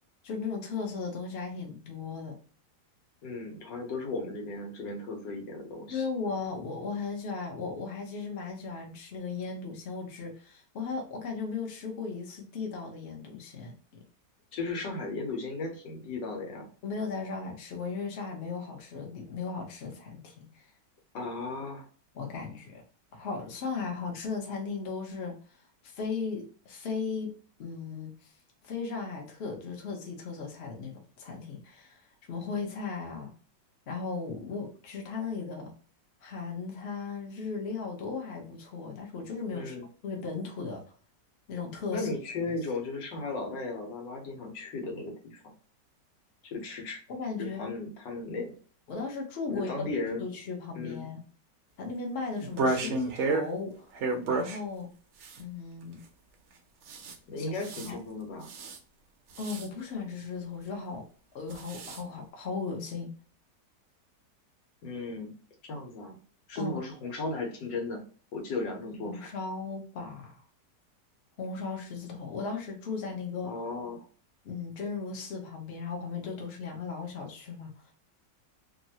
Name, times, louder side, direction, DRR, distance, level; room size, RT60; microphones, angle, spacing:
voice 1, 0.2-2.4 5.9-14.0 16.8-20.7 22.1-22.8 23.1-25.4 25.8-27.3 27.6-28.3 28.6-30.9 31.2-33.3 33.9-35.7 36.2-39.8 40.0-40.8 41.5-42.1 47.1-47.7 48.9-49.9 50.2-51.2 51.8-53.9 54.3-54.9 55.4-56.0 57.4-57.5 57.8-58.0 59.4-61.0 61.3-63.1 66.5-66.8 69.0-70.4 71.4-73.5 74.4-77.9, left 4 dB, 45° left, 1 dB, 0.9 m, -36 dB
voice 2, 3.2-6.1 14.5-16.7 21.1-21.8 39.5-39.9 41.9-45.4 46.4-47.0 47.4-48.5 49.5-50.3 50.7-51.1 52.7-53.0 57.3-58.5 64.8-65.4 65.6-66.2 66.5-68.0 68.3-69.3 73.4-74.0, left 3 dB, 85° left, 2 dB, 1.5 m, -36 dB
sound 1, 52.4-53.5 53.9-54.6 55.2-55.4 56.9-57.1 57.5-57.9 58.5-58.8 59.3-59.7 61.5-62.0, right 3 dB, 75° right, 0.6 m, -31 dB
3.1 x 2.5 x 2.7 m, 0.40 s
omnidirectional pair, 1.9 m